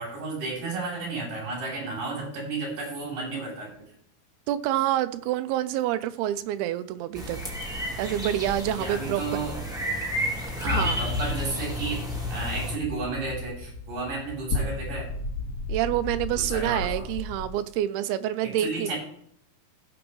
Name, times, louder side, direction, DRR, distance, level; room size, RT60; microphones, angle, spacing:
voice 1, 0.0-3.7 8.8-9.6 10.6-15.1 16.4-17.1 18.4-19.0, right 3 dB, 60° right, 5.1 m, -32 dB
voice 2, 4.5-7.4 8.0-9.2 10.6-11.0 15.7-18.9, right 12 dB, 85° right, 2.6 m, -27 dB
sound 1, 7.1-12.7, equal, ahead, 1.5 m, -32 dB
sound 2, 10.6-17.5, left 3 dB, 50° left, 1.3 m, -33 dB
18.5 x 6.2 x 3.1 m
omnidirectional pair, 4.5 m